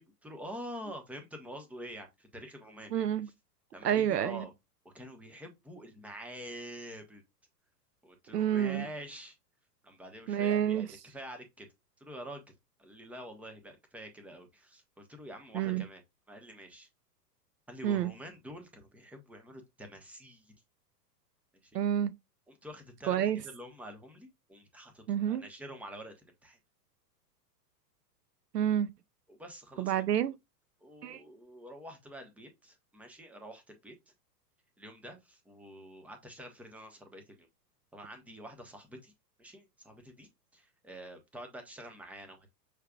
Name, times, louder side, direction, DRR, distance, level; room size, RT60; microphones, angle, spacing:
voice 1, 0.0-3.1 3.7-4.5 4.8-7.2 8.0-9.4 9.8-11.7 12.0-12.5 12.8-16.0 16.3-16.9 17.7-20.5 21.6-21.8 22.5-26.6 29.3-29.9 30.8-33.9 34.8-37.5 37.9-39.1 39.4-42.5, equal, 5° right, 1.0 m, -47 dB
voice 2, 2.9-3.3 3.8-4.5 8.3-8.9 10.3-10.9 15.5-15.8 17.8-18.1 21.7-22.1 23.1-23.4 25.1-25.4 28.5-28.9 29.8-30.4 31.0-31.2, right 10 dB, 75° right, 0.7 m, -29 dB
6.4 x 3.3 x 2.4 m
figure-of-eight pair, 105°, 49 cm